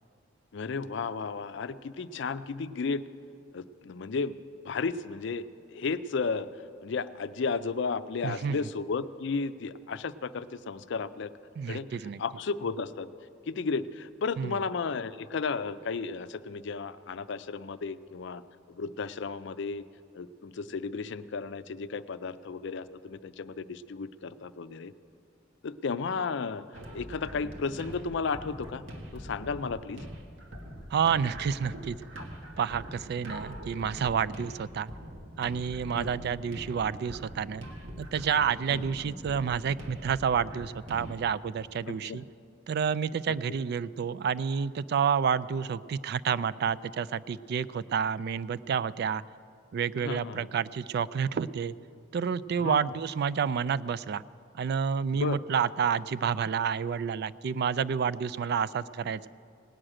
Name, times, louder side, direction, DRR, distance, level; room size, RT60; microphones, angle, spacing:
voice 1, 0.5-3.0 3.5-4.4 4.6-6.5 6.8-11.3 11.7-11.9 12.2-13.1 13.5-18.4 18.7-19.8 20.1-24.9 25.6-26.6 26.9-28.9 29.1-30.0 35.9-36.1 38.7-38.8 41.8-42.2 43.3-43.4 50.0-50.5 52.6-52.8 55.1-55.4, left 4 dB, 65° left, 13 dB, 0.5 m, -33 dB
voice 2, 8.2-8.6 11.6-12.2 14.4-14.6 30.9-32.0 32.6-34.9 35.4-37.7 38.0-42.2 42.7-49.2 49.7-51.8 52.1-54.2 54.5-59.3, right 7 dB, 55° right, 17 dB, 0.3 m, -29 dB
sound 1, 26.7-41.2, equal, 85° right, 1.5 m, -43 dB
18.5 x 6.4 x 8.8 m, 2.4 s
head